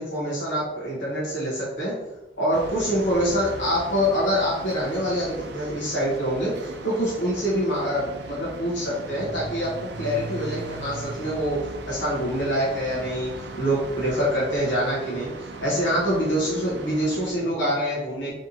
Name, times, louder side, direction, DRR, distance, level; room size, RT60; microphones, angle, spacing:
voice 1, 0.0-2.0 2.4-11.6 11.9-18.3, equal, 80° left, -7 dB, 1.2 m, -25 dB
sound 1, 2.5-17.3, right 3 dB, 65° right, 0.5 m, -38 dB
3.9 x 3.4 x 2.8 m, 1.0 s
head